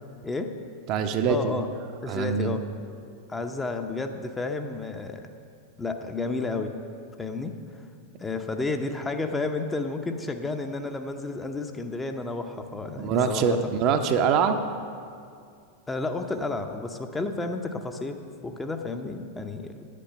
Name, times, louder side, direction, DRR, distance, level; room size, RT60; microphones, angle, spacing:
voice 1, 0.2-0.6 1.3-1.7 2.0-2.7 3.3-5.3 5.8-6.8 7.2-7.8 8.2-13.6 15.9-19.8, left 3 dB, 10° left, 6 dB, 0.7 m, -31 dB
voice 2, 0.9-1.6 2.1-2.6 13.0-14.6, right 6 dB, 40° right, 7 dB, 0.6 m, -24 dB
10.0 x 8.4 x 5.6 m, 2.3 s
figure-of-eight pair, 90°, 0 cm